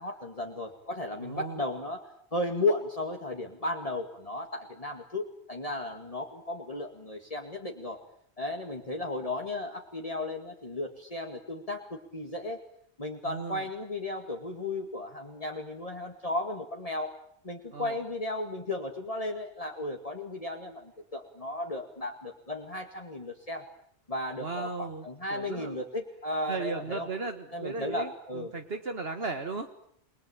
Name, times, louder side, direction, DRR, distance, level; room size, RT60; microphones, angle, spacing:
voice 1, 0.0-8.0 8.4-12.6 13.0-17.1 17.4-23.6 24.1-27.1 27.5-28.5, left 2 dB, 35° left, 2 dB, 2.3 m, -35 dB
voice 2, 1.2-1.6 13.3-13.6 17.7-18.0 24.4-25.1 25.3-25.7 26.5-29.9, right 4 dB, 60° right, 7 dB, 1.9 m, -36 dB
29.0 x 21.0 x 9.9 m, 0.66 s
omnidirectional pair, 1.1 m